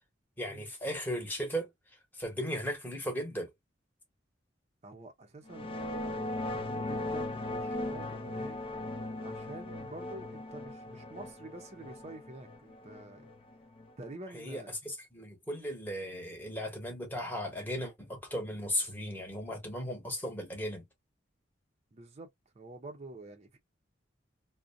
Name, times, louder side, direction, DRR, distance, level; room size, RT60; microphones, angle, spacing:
voice 1, 0.4-1.7 2.2-3.5 14.3-20.8, equal, 10° left, 1.0 m, -36 dB
voice 2, 4.8-8.6 9.2-13.2 14.0-14.7 21.9-22.3 22.6-23.6, right 2 dB, 35° right, 0.6 m, -48 dB
sound 1, 5.5-14.1, left 2 dB, 30° left, 0.4 m, -38 dB
2.5 x 2.1 x 2.5 m
head